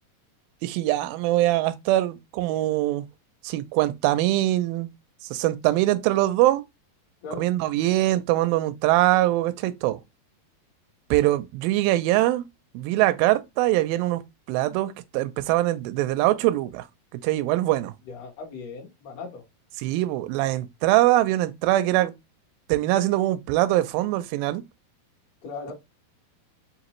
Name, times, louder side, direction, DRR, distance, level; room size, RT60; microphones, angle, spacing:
voice 1, 0.6-3.1 3.4-4.9 5.2-6.6 7.4-10.0 11.1-12.5 12.7-14.2 14.5-16.8 17.1-17.9 19.8-22.1 22.7-24.6, right 16 dB, 80° right, 2.1 m, -23 dB
voice 2, 18.1-19.4 25.4-25.7, left 4 dB, 55° left, 1.9 m, -38 dB
5.9 x 2.6 x 3.0 m
omnidirectional pair, 4.6 m